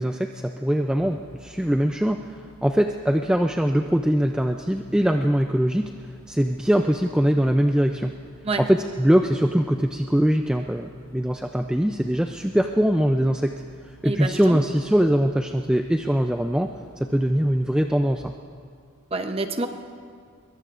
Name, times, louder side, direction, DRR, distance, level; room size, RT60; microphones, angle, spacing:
voice 1, 0.0-8.2 8.6-13.5 14.0-16.7 17.0-18.3, equal, 5° right, 4 dB, 0.3 m, -22 dB
sound 1, 1.0-18.2, equal, 15° left, 2.4 m, -53 dB
voice 2, 14.0-14.6 19.1-19.7, right 3 dB, 25° right, 7 dB, 0.7 m, -27 dB
23.5 x 22.5 x 2.5 m, 2.1 s
head